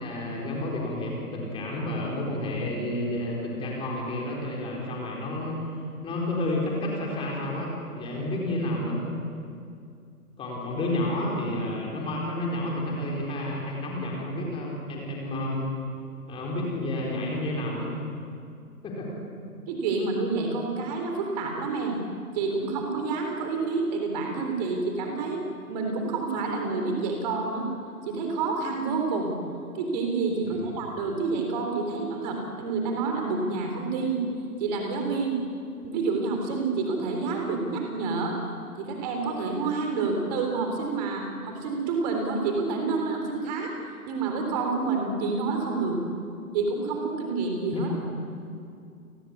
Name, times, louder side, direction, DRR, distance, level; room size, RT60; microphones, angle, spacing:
voice 1, 0.0-5.6 6.0-9.0 10.4-15.7 16.3-17.9 18.8-19.1 30.4-30.7 47.7-47.9, left 1 dB, 10° left, -2 dB, 4.4 m, -30 dB
voice 2, 19.7-22.0 22.3-27.7 28.0-29.3 29.7-34.2 34.6-35.4 35.8-38.4 38.8-43.7 44.1-46.0 46.5-47.9, right 4 dB, 25° right, 3 dB, 3.6 m, -28 dB
29.5 x 20.5 x 8.4 m, 2.4 s
figure-of-eight pair, 140°, 46 cm